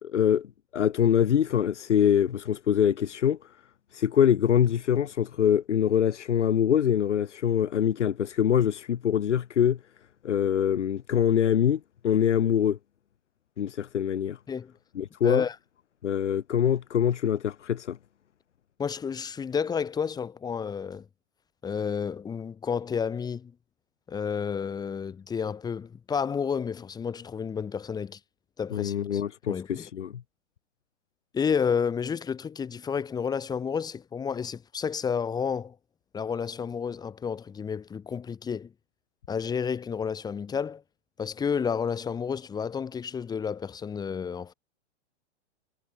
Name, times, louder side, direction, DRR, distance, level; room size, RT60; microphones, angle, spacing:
voice 1, 0.0-0.5 0.7-3.4 3.9-9.8 10.2-12.8 13.6-14.4 14.9-15.4 16.0-18.0 28.7-30.1, left 9 dB, 85° left, 3.2 m, -24 dB
voice 2, 15.2-15.6 18.8-21.0 21.6-23.5 24.1-28.2 28.6-29.2 29.5-29.9 31.3-35.8 36.1-38.7 39.3-40.8 41.2-44.5, left 6 dB, 10° left, 4.5 m, -30 dB
hypercardioid pair, 160°, 35 cm